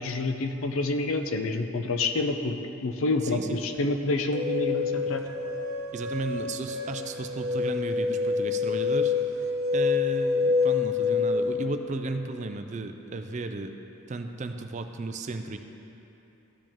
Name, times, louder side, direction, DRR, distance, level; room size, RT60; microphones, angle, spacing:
voice 1, 0.0-5.2, left 2 dB, 65° left, 6 dB, 0.5 m, -28 dB
voice 2, 3.1-3.6 5.9-9.1 9.7-13.7 14.1-15.6, right 3 dB, 35° right, 7 dB, 0.4 m, -34 dB
sound 1, 4.3-11.5, left 4 dB, 50° right, 1.0 m, -27 dB
14.0 x 5.3 x 3.6 m, 3.0 s
head